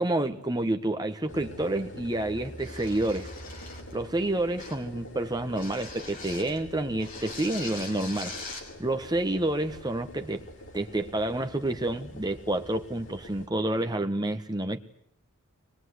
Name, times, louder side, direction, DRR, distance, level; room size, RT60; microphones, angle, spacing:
voice 1, 0.0-3.3 3.9-8.3 8.8-10.4 10.7-14.8, right 1 dB, 20° right, 1.5 m, -29 dB
sound 1, 1.3-13.5, left 1 dB, 60° left, 4.5 m, -45 dB
sound 2, 2.6-4.0 4.6-4.9 5.6-6.6 7.0-8.7, left 3 dB, 40° left, 5.3 m, -42 dB
24.0 x 21.5 x 9.7 m
head